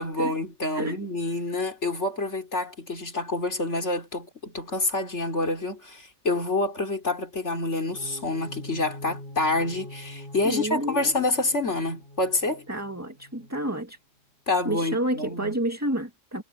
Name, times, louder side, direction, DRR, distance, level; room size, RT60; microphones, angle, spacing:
voice 1, 0.0-12.7 14.5-15.6, left 2 dB, 65° left, 4.1 m, -27 dB
sound 1, 7.9-13.7, left 1 dB, 40° left, 7.0 m, -44 dB
voice 2, 10.4-11.1 12.7-14.0 14.6-16.4, right 1 dB, 10° right, 2.1 m, -29 dB
omnidirectional pair, 1.3 m